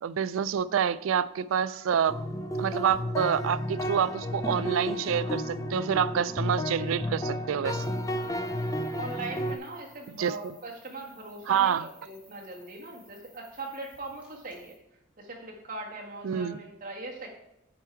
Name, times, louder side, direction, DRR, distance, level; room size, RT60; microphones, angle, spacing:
voice 1, 0.0-2.2 2.6-7.9 10.2-10.5 11.5-11.8 16.2-16.6, right 8 dB, 85° right, 16 dB, 0.3 m, -27 dB
sound 1, 2.1-9.6, left 1 dB, 15° left, 0.4 m, -32 dB
sound 2, 7.7-14.8, right 1 dB, 5° right, 1.9 m, -60 dB
voice 2, 9.0-14.7 15.2-17.3, right 2 dB, 45° right, -1 dB, 1.7 m, -40 dB
9.3 x 4.5 x 4.6 m, 0.87 s
head